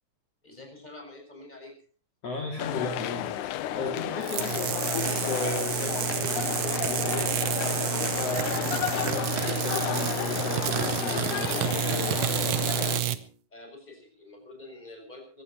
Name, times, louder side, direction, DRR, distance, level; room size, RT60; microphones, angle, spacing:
voice 1, 0.4-1.7 8.2-8.7 13.5-15.4, left 2 dB, 10° left, 3 dB, 6.8 m, -46 dB
voice 2, 2.2-7.4 8.1-12.2, left 3 dB, 50° left, 1 dB, 3.5 m, -36 dB
sound 1, 2.6-13.0, left 12 dB, 75° left, 2.2 m, -32 dB
sound 2, 4.2-13.2, right 12 dB, 70° right, 1.4 m, -29 dB
23.0 x 16.5 x 3.0 m, 0.39 s
omnidirectional pair, 3.8 m